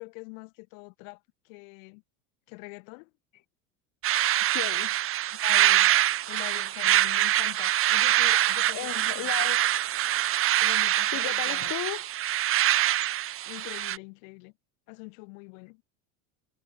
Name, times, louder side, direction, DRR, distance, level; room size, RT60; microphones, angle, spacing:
voice 1, 0.0-2.0 2.5-3.1 5.2-5.9 6.3-9.3 10.6-11.8 13.4-14.5 14.9-15.8, left 34 dB, 70° left, 1.4 m, -44 dB
sound 1, 4.0-14.0, right 13 dB, 35° right, 0.7 m, -24 dB
voice 2, 4.5-5.0 8.7-9.6 11.1-12.1, left 16 dB, 45° left, 1.5 m, -35 dB
supercardioid pair, 100°, 41 cm